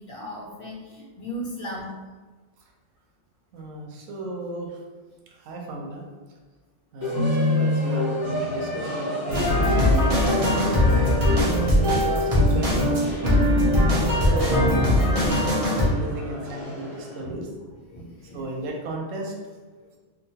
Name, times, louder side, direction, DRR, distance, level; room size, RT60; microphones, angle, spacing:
voice 1, 0.0-1.9 4.2-4.3 15.1-15.3 17.2-17.4 17.9-18.4, equal, 60° left, -3 dB, 0.6 m, -37 dB
voice 2, 3.5-4.8 5.4-6.0 6.9-13.1 14.2-17.5 18.3-19.3, right 1 dB, 85° right, 0 dB, 1.0 m, -33 dB
sound 1, 7.0-17.2, left 1 dB, 25° left, 0.7 m, -29 dB
sound 2, 9.3-15.8, left 1 dB, 35° right, 0.6 m, -21 dB
2.9 x 2.1 x 2.7 m, 1.3 s
omnidirectional pair, 1.3 m